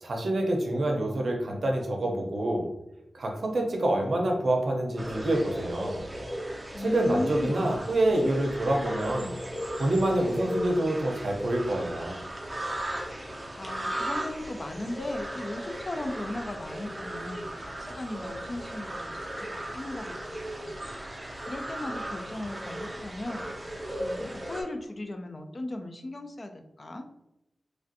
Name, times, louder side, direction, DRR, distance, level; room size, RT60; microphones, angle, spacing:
voice 1, 0.0-2.7 3.1-6.0 6.8-9.3 9.8-12.2, right 1 dB, 65° right, 1 dB, 0.6 m, -27 dB
sound 1, 5.0-24.6, equal, 20° right, 0.5 m, -36 dB
voice 2, 6.7-7.8 13.1-13.2 13.6-20.7 21.1-23.5 24.0-27.1, left 1 dB, 40° left, 6 dB, 0.3 m, -37 dB
3.2 x 2.5 x 2.6 m, 0.88 s
wide cardioid pair, 120°, 0 cm